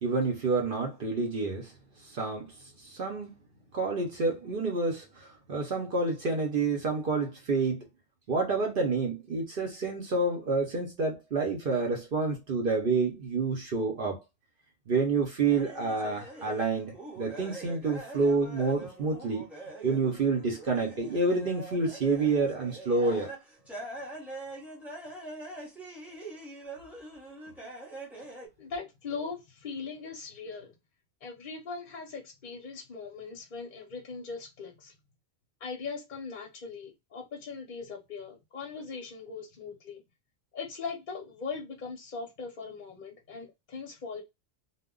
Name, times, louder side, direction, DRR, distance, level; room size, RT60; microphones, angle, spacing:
voice 1, 0.0-1.7 2.0-3.4 3.7-7.8 8.3-14.2 14.9-19.4 19.8-23.3, right 3 dB, 55° right, 0.8 m, -28 dB
sound 1, 15.5-28.5, right 2 dB, ahead, 0.7 m, -44 dB
voice 2, 28.6-30.7 31.2-34.9 35.6-40.0 40.5-44.2, left 5 dB, 50° left, 0.7 m, -40 dB
2.2 x 2.1 x 3.6 m
omnidirectional pair, 1.2 m